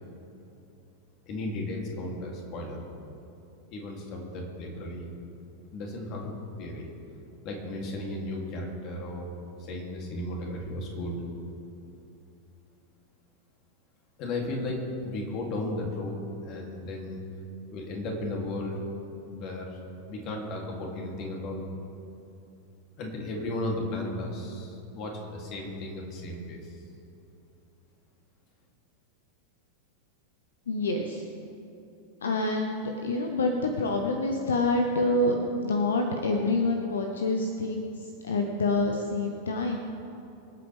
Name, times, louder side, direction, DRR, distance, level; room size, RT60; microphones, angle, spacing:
voice 1, 1.3-2.8 3.7-5.1 5.7-6.9 7.4-9.3 9.6-11.2 14.2-17.2 17.7-18.7 19.3-19.8 20.1-21.7 23.0-26.8, left 1 dB, 40° left, -1 dB, 2.8 m, -35 dB
voice 2, 30.7-31.2 32.2-39.8, left 2 dB, 65° left, 4 dB, 1.0 m, -27 dB
25.0 x 8.5 x 3.5 m, 2.7 s
figure-of-eight pair, 90°, 0 cm